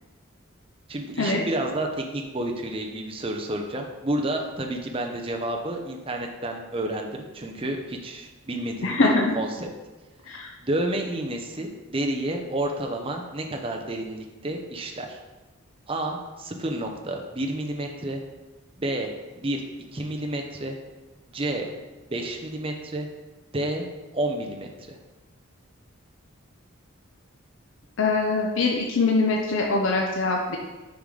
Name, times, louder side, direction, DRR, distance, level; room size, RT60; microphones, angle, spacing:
voice 1, 0.9-9.7 10.3-10.4 10.6-15.2 15.9-18.2 18.8-19.6 19.9-20.7 21.3-21.7 22.1-23.1 23.5-23.8 24.1-25.0, right 1 dB, 25° right, 2 dB, 0.7 m, -30 dB
voice 2, 8.8-9.4 10.3-10.5 28.0-30.6, left 3 dB, 65° left, 0 dB, 0.6 m, -23 dB
6.9 x 4.8 x 3.9 m, 1.2 s
head